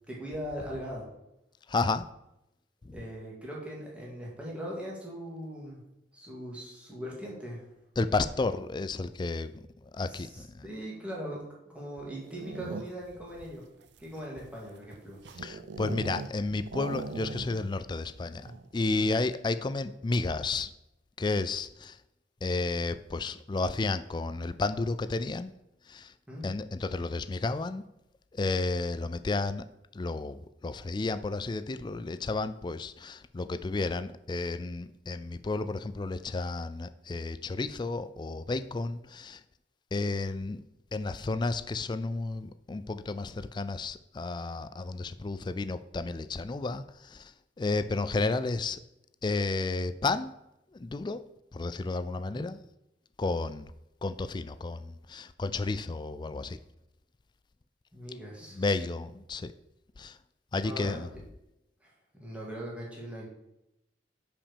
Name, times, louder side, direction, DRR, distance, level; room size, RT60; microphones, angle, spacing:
voice 1, 0.1-1.1 2.9-5.8 6.1-7.6 10.1-11.5 11.7-13.6 14.0-15.2 19.0-19.1 26.3-26.5 52.3-52.4 57.9-58.8 60.6-61.0 61.8-61.9 62.2-63.3, equal, 5° right, 2.2 m, -40 dB
voice 2, 1.7-2.0 2.8-3.0 8.0-9.6 9.9-10.6 15.4-18.5 18.7-20.7 21.2-22.0 22.4-25.5 25.9-26.1 26.4-27.8 28.3-29.6 29.9-39.4 39.9-40.6 40.9-48.8 49.2-50.3 50.7-51.2 51.5-52.6 53.2-53.7 54.0-56.6 58.5-59.5 60.0-60.2 60.5-61.1, left 3 dB, 25° left, 0.3 m, -32 dB
sound 1, 12.1-13.2 13.8-16.4 16.7-17.8 18.0-18.1 18.4-18.8, right 3 dB, 70° right, 0.5 m, -39 dB
5.8 x 5.1 x 6.5 m
head